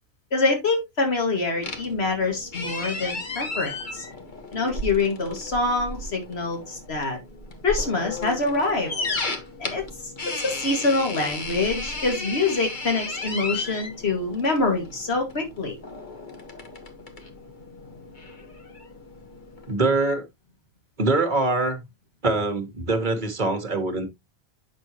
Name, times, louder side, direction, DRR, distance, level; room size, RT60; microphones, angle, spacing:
voice 1, 0.3-4.1 4.5-7.2 7.6-8.9 9.6-9.8 10.3-15.8, left 3 dB, 80° left, 2.4 m, -25 dB
sound 1, 1.6-19.7, left 2 dB, 50° left, 1.6 m, -35 dB
voice 2, 19.7-20.2 21.0-21.8 22.2-24.1, right 3 dB, 50° right, 1.6 m, -23 dB
8.9 x 6.3 x 3.0 m
omnidirectional pair, 1.1 m